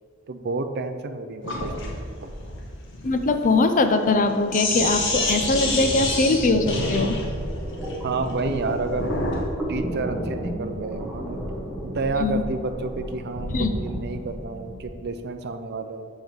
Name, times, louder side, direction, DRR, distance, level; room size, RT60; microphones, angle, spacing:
voice 1, 0.3-2.3 8.0-9.1 9.7-11.4 11.8-16.1, right 3 dB, 55° right, 8 dB, 0.6 m, -30 dB
Sink (filling or washing), 1.4-9.5, left 2 dB, 60° left, 1.5 m, -28 dB
voice 2, 3.0-7.2 12.2-12.4 13.5-13.7, left 3 dB, 40° left, 8 dB, 0.6 m, -21 dB
sound 1, 5.6-15.0, equal, 5° right, 1.8 m, -33 dB
7.1 x 5.4 x 6.2 m, 2.1 s
head